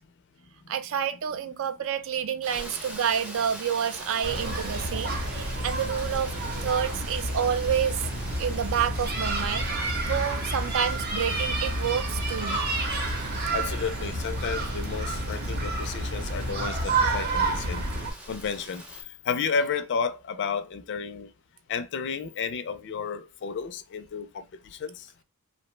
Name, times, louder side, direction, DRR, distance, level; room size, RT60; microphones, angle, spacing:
voice 1, 0.7-6.3 6.6-8.0 8.4-9.7 10.1-12.6, right 8 dB, 60° right, 0.4 m, -28 dB
Rain, 2.4-19.0, equal, 5° right, 0.5 m, -43 dB
sound 1, 4.2-18.1, right 2 dB, 45° right, 0.8 m, -29 dB
voice 2, 13.5-17.8 18.3-18.8 19.3-21.3 21.7-25.1, left 6 dB, 50° left, 0.4 m, -32 dB
2.8 x 2.1 x 3.1 m
head